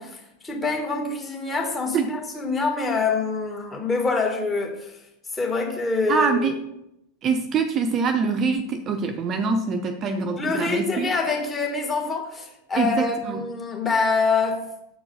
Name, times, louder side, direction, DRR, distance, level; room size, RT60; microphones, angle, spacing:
voice 1, 0.0-4.9 5.3-6.5 10.4-14.7, left 4 dB, 15° left, 1 dB, 1.9 m, -25 dB
voice 2, 6.1-6.6 7.2-11.1 12.8-13.4, right 5 dB, 30° right, 7 dB, 0.7 m, -24 dB
7.9 x 4.6 x 6.7 m, 0.81 s
figure-of-eight pair, 90°, 0 cm